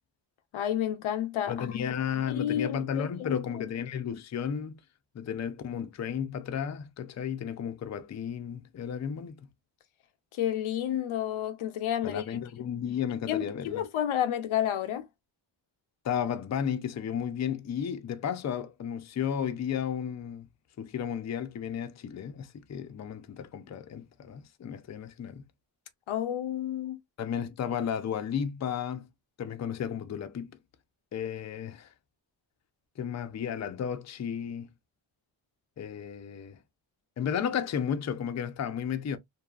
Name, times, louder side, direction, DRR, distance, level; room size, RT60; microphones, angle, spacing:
voice 1, 0.5-1.7 2.3-3.7 10.3-12.4 13.3-15.1 26.1-27.0, left 11 dB, 90° left, 0.6 m, -31 dB
voice 2, 1.5-4.8 5.1-9.4 12.0-13.8 16.0-20.5 20.8-25.4 27.2-29.1 29.4-30.5 31.1-31.9 33.0-34.7 35.8-36.6 37.2-39.2, left 8 dB, 35° left, 0.4 m, -33 dB
2.6 x 2.3 x 2.3 m
cardioid pair, 60°, 47 cm